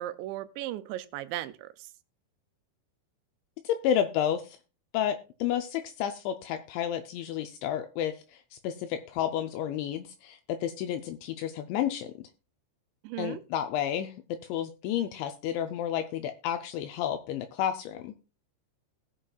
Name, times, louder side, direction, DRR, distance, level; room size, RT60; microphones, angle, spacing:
voice 1, 0.0-1.9 13.0-13.4, right 14 dB, 80° right, 11 dB, 2.7 m, -36 dB
voice 2, 3.6-4.6 4.9-12.3 13.2-14.1 14.5-18.1, left 10 dB, 80° left, 7 dB, 2.8 m, -31 dB
18.5 x 7.3 x 2.3 m, 0.33 s
omnidirectional pair, 5.4 m